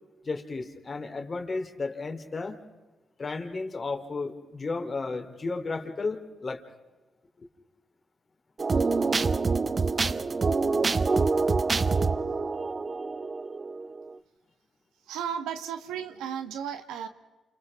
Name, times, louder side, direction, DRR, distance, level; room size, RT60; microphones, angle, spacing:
voice 1, 0.2-2.6 3.2-6.6 7.4-7.5, left 3 dB, 45° left, 5 dB, 3.5 m, -33 dB
sound 1, 8.6-14.1, right 4 dB, 45° right, 0.8 m, -26 dB
voice 2, 15.1-17.1, right 8 dB, 90° right, 8 dB, 1.5 m, -34 dB
29.0 x 28.0 x 3.7 m, 1.2 s
supercardioid pair, 55°, 0 cm